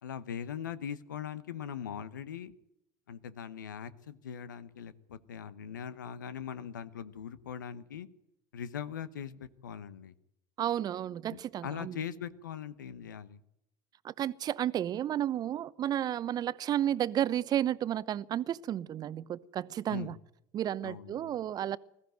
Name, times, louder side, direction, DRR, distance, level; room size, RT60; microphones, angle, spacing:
voice 1, 0.0-2.5 3.1-8.1 8.5-10.1 11.3-13.4 19.9-20.2 20.8-21.4, left 8 dB, 85° left, 1.0 m, -41 dB
voice 2, 10.6-12.0 14.0-20.1 20.5-21.8, right 11 dB, 40° right, 0.8 m, -32 dB
20.5 x 15.0 x 9.1 m
hypercardioid pair, 75°, 10 cm